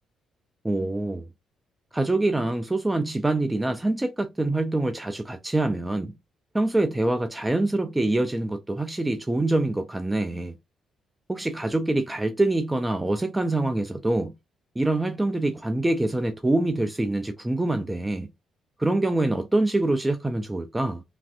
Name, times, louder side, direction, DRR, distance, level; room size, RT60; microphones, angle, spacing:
voice 1, 0.6-1.3 1.9-6.1 6.5-10.5 11.3-14.3 14.8-18.3 18.8-21.0, right 2 dB, 15° right, 0.3 m, -25 dB
3.1 x 2.5 x 2.4 m
cardioid pair, 90°, 0 cm